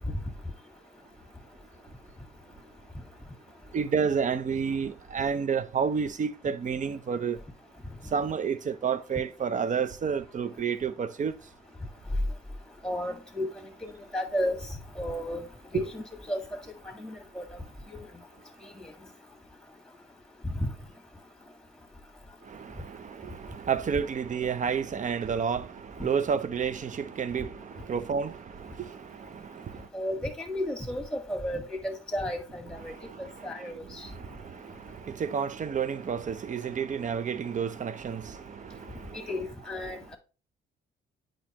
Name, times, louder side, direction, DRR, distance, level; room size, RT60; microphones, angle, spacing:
voice 1, 3.7-7.4 8.1-11.3 15.7-15.8 22.5-29.9 32.8-39.3 39.9-40.0, right 6 dB, 40° right, 0.6 m, -31 dB
voice 2, 12.8-14.6 14.9-15.5 15.7-16.4 17.0-17.6 20.4-20.5 29.9-32.9 33.2-34.1 39.1-40.2, left 1 dB, 5° left, 1.7 m, -33 dB
8.6 x 5.1 x 2.9 m
cardioid pair, 90°, 20 cm